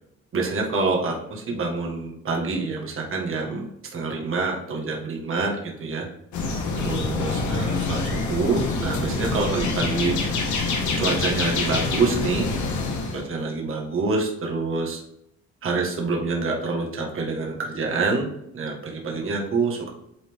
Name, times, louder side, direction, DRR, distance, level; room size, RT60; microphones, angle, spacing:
voice 1, 0.3-6.1 6.7-10.1 11.0-12.5 13.1-15.0 15.6-18.3 18.5-19.9, right 3 dB, 45° right, -1 dB, 1.7 m, -26 dB
sound 1, 6.3-13.2, left 3 dB, 80° left, 1.6 m, -26 dB
8.5 x 4.2 x 3.6 m, 0.79 s
cardioid pair, 115°, 29 cm